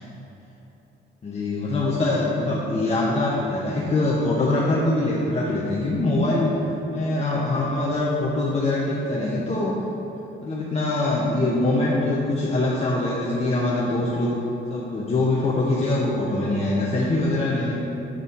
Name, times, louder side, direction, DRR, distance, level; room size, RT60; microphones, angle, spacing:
voice 1, 1.2-6.5 6.9-9.7 10.4-14.3 14.7-17.8, left 2 dB, 30° left, -5 dB, 1.0 m, -23 dB
7.6 x 4.0 x 5.5 m, 3.0 s
cardioid pair, 90°, 20 cm